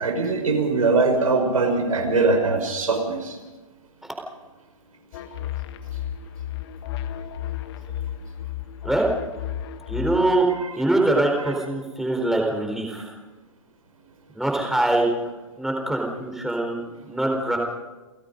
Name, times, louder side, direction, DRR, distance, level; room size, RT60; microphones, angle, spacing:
voice 1, 0.0-3.4 10.5-10.8 11.4-11.5, right 3 dB, 85° right, 4 dB, 5.6 m, -22 dB
sound 1, 5.1-10.4, left 10 dB, 50° left, 1.6 m, -33 dB
voice 2, 9.9-10.5 10.7-13.1 14.4-15.1 15.6-16.8 17.1-17.6, right 2 dB, ahead, 0 dB, 4.4 m, -23 dB
29.5 x 16.0 x 5.4 m, 1.2 s
hypercardioid pair, 125°, 17 cm